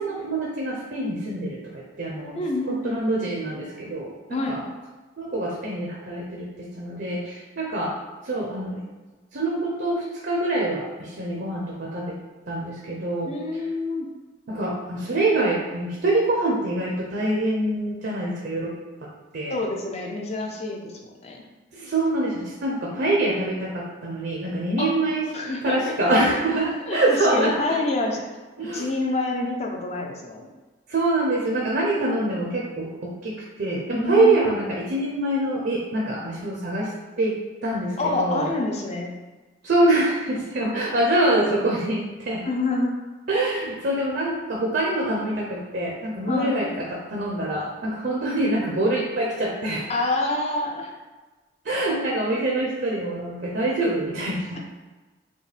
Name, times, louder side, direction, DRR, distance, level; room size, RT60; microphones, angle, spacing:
voice 1, 0.0-2.4 2.8-4.6 5.2-7.9 8.2-8.8 9.3-12.2 12.5-13.6 14.5-18.7 19.0-19.1 19.3-19.6 21.7-25.3 25.6-27.8 28.1-28.2 28.6-28.9 30.9-38.5 39.6-42.5 43.3-49.9 51.6-54.6, right 2 dB, 55° right, -3 dB, 0.6 m, -25 dB
voice 2, 2.3-3.0 4.3-4.6 13.3-14.1 19.5-21.4 24.8-24.9 25.3-25.9 26.9-28.2 28.7-30.5 33.9-34.6 38.0-39.1 42.4-42.9 46.3-46.6 49.9-50.9, left 2 dB, 30° left, 1 dB, 0.5 m, -27 dB
5.2 x 2.2 x 3.3 m, 1.3 s
head